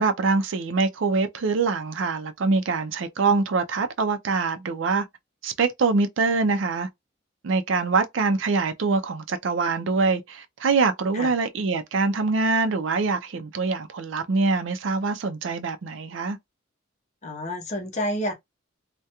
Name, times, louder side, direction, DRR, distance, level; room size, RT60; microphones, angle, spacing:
voice 1, 0.0-5.0 5.4-6.9 7.4-16.4, right 4 dB, 70° right, 0.4 m, -24 dB
voice 2, 17.2-18.3, equal, 35° left, 0.7 m, -29 dB
2.3 x 2.1 x 2.8 m
head